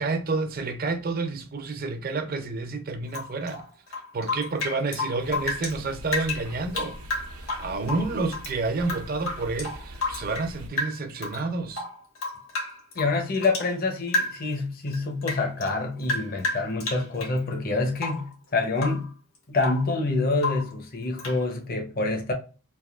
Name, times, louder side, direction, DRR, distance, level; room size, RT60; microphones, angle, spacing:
voice 1, 0.0-3.6 4.1-7.0 7.4-11.8, right 3 dB, 40° right, 0.5 m, -29 dB
Rain / Drip, 3.1-5.8 6.1-8.5 8.8-10.5 10.8-11.4 11.7-13.7 14.1-14.5 14.9-17.4 18.0-18.3 18.7-19.1 19.3-19.9 20.4-20.7 21.2-21.4, left 3 dB, 75° left, 1.4 m, -31 dB
sound 1, 5.2-10.7, right 1 dB, 85° right, 0.6 m, -43 dB
voice 2, 13.0-19.1 19.5-22.3, left 3 dB, 45° left, 0.7 m, -27 dB
3.5 x 2.6 x 2.3 m
head